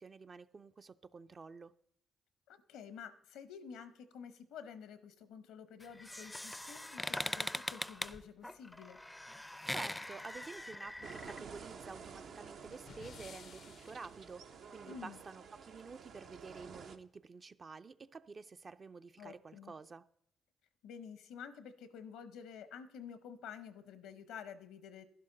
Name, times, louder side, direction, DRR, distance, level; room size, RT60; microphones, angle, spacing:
voice 1, 0.0-1.7 9.7-20.0, right 4 dB, 40° right, 0.5 m, -50 dB
voice 2, 2.5-9.0 14.9-15.2 19.2-19.7 20.8-25.1, left 7 dB, 80° left, 0.8 m, -50 dB
sound 1, 5.8-11.4, left 1 dB, 10° left, 0.5 m, -41 dB
sound 2, 10.3-14.2, left 7 dB, 65° left, 0.5 m, -57 dB
sound 3, 11.0-17.0, right 6 dB, 70° right, 0.8 m, -51 dB
11.5 x 11.0 x 3.9 m
supercardioid pair, 55°, 0 cm